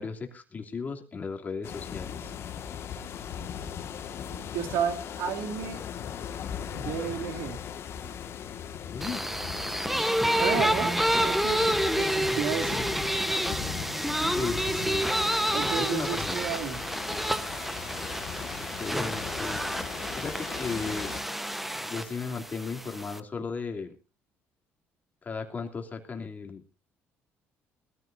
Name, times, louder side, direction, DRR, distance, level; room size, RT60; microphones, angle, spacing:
voice 1, 0.0-2.3 8.9-9.3 14.3-15.1 15.7-16.5 16.9-17.2 18.6-19.6 20.2-21.1 21.8-23.9 25.2-26.7, left 5 dB, 30° left, 3 dB, 3.0 m, -36 dB
sound 1, 1.6-21.2, left 8 dB, 60° left, 1.9 m, -39 dB
voice 2, 4.3-5.8 6.7-7.6 9.9-10.1 10.4-12.9 15.5-16.8, right 8 dB, 85° right, 4 dB, 2.7 m, -32 dB
sound 2, 9.0-23.2, equal, 5° right, 1.1 m, -29 dB
22.0 x 14.5 x 2.7 m, 0.31 s
cardioid pair, 100°, 5 cm